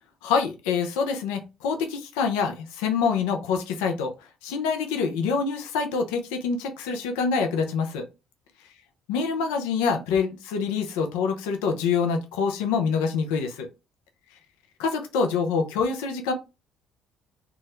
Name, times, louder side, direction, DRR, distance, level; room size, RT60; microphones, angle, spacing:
voice 1, 0.2-4.1 4.4-8.0 9.1-13.7 14.8-16.3, left 5 dB, 90° left, 4 dB, 0.5 m, -26 dB
3.4 x 2.1 x 2.9 m, 0.27 s
supercardioid pair, 70°, 0 cm